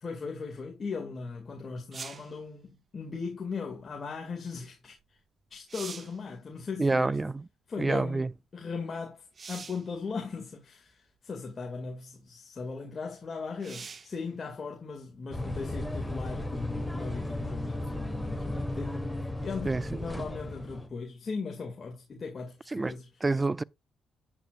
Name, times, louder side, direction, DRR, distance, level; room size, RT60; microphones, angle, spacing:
voice 1, 0.0-5.2 5.5-7.2 7.7-19.0 19.4-23.1, left 4 dB, 40° left, 2.2 m, -38 dB
sound 1, 1.9-2.4 5.0-5.1 5.5-6.2 9.3-9.9 10.9-11.0 13.6-14.2 17.8-17.9, right 5 dB, 40° right, 0.8 m, -43 dB
voice 2, 6.8-7.4 7.8-8.3 19.7-19.8 22.7-23.0 23.2-23.6, right 3 dB, 20° right, 0.4 m, -27 dB
sound 2, 15.3-20.9, left 1 dB, 10° left, 1.4 m, -35 dB
9.3 x 8.6 x 2.5 m
cardioid pair, 90°, 0 cm